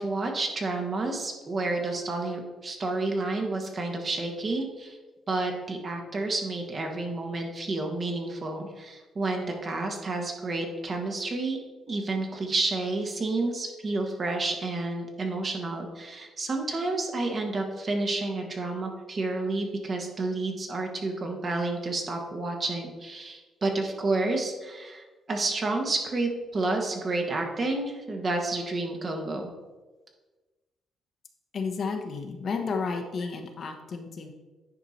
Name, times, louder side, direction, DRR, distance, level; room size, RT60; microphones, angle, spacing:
voice 1, 0.0-5.0 5.3-11.6 11.9-29.5, right 2 dB, 40° right, 3 dB, 1.6 m, -30 dB
voice 2, 31.5-34.3, left 4 dB, 55° left, 4 dB, 1.2 m, -32 dB
9.7 x 4.8 x 4.3 m, 1.2 s
cardioid pair, 90°, 0 cm